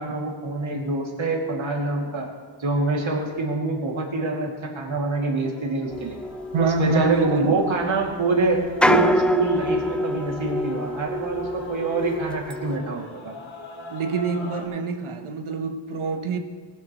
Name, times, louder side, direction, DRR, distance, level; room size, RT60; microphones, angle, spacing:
voice 1, 0.0-2.3 2.6-6.2 6.6-13.3, right 2 dB, 70° right, 2.5 m, -25 dB
Male singing / Female singing / Musical instrument, 5.2-14.7, left 2 dB, 70° left, 1.9 m, -43 dB
sound 1, 5.9-12.8, left 1 dB, 5° left, 0.3 m, -27 dB
voice 2, 6.5-7.6 13.9-16.4, right 4 dB, 85° right, 1.1 m, -25 dB
19.0 x 11.5 x 3.1 m
wide cardioid pair, 85°, 49 cm